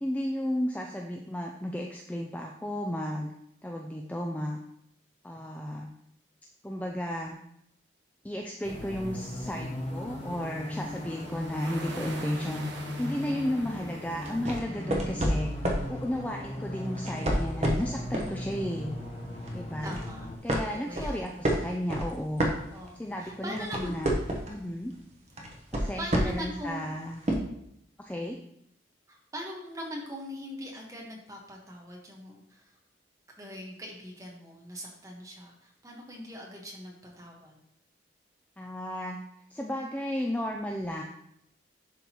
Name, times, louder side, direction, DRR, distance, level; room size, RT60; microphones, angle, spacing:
voice 1, 0.0-3.3 3.6-4.6 5.2-5.9 6.6-7.4 8.2-12.6 13.0-15.5 15.9-18.9 19.5-20.0 20.4-22.5 23.0-24.1 24.5-24.9 25.7-27.2 28.0-28.4 38.6-39.2 39.5-41.0, equal, 10° left, 0 dB, 0.3 m, -33 dB
sound 1, 8.6-20.4, left 1 dB, 35° left, 0.8 m, -38 dB
sound 2, 8.6-14.6, right 3 dB, 65° right, 1.0 m, -46 dB
sound 3, 14.2-15.9 16.9-18.4 18.8-19.0 19.4-20.1 20.5-23.1 23.4-24.6 25.4-26.5 27.3-27.4, right 1 dB, 35° right, 0.9 m, -29 dB
voice 2, 19.8-20.3 20.5-21.4 22.7-23.9 26.0-26.9 29.1-32.7 33.4-37.6, equal, 15° right, -1 dB, 1.2 m, -41 dB
11.0 x 3.8 x 2.9 m, 0.76 s
head